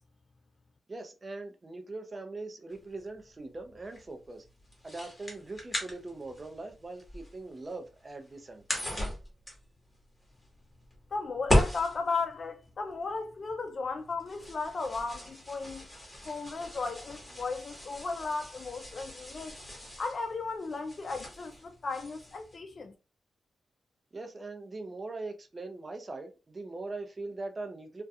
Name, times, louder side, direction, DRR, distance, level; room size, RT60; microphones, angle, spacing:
voice 1, 0.9-4.4 4.8-8.8 24.1-28.0, right 2 dB, 30° right, 0.5 m, -41 dB
sound 1, 2.7-22.6, left 1 dB, 15° left, 1.0 m, -37 dB
voice 2, 11.1-15.8 16.3-19.6 20.0-22.9, left 4 dB, 45° left, 0.3 m, -35 dB
2.3 x 2.2 x 2.6 m
cardioid pair, 90°, 0 cm